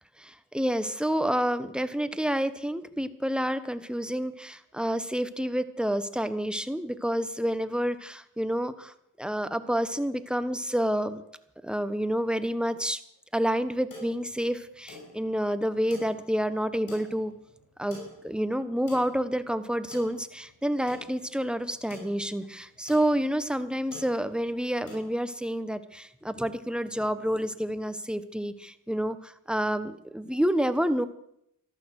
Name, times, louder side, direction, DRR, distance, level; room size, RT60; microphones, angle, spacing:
voice 1, 0.2-8.9 9.2-11.2 11.6-13.0 13.3-17.3 17.8-31.1, equal, 5° right, 12 dB, 1.3 m, -29 dB
sound 1, 13.6-25.1, left 2 dB, 90° left, 6.4 m, -49 dB
14.0 x 12.5 x 6.5 m, 0.75 s
cardioid pair, 50°, 33 cm